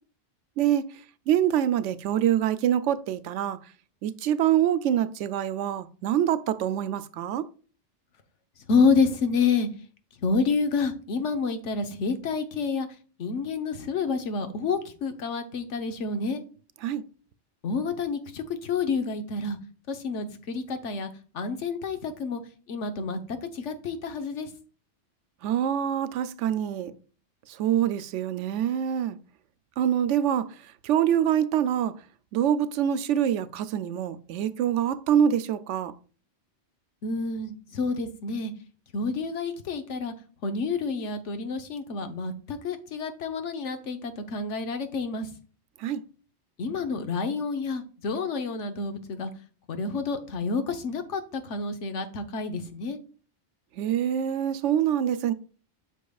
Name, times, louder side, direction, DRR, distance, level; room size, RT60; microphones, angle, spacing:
voice 1, 1.3-3.6 4.0-7.5 16.8-17.0 25.4-26.9 27.6-29.2 29.8-30.5 30.8-31.9 32.3-35.9 45.8-46.0 53.8-55.3, right 10 dB, 90° right, 0.9 m, -25 dB
voice 2, 8.7-9.7 10.2-12.9 13.2-16.4 17.6-19.6 19.9-22.4 22.7-23.2 23.5-24.5 37.0-38.5 38.9-40.1 40.4-45.3 46.6-49.3 49.7-53.0, left 4 dB, 90° left, 1.3 m, -28 dB
8.3 x 5.9 x 2.3 m
omnidirectional pair, 1.2 m